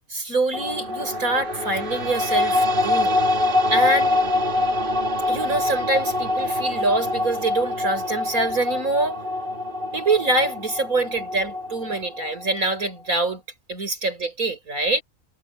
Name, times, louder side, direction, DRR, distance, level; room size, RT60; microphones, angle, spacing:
voice 1, 0.1-3.2 3.7-4.2 5.3-9.2 9.9-13.4 13.7-15.0, right 2 dB, 80° right, 6.6 m, -25 dB
sound 1, 0.5-12.8, left 2 dB, 40° right, 1.6 m, -24 dB
omnidirectional pair, 1.5 m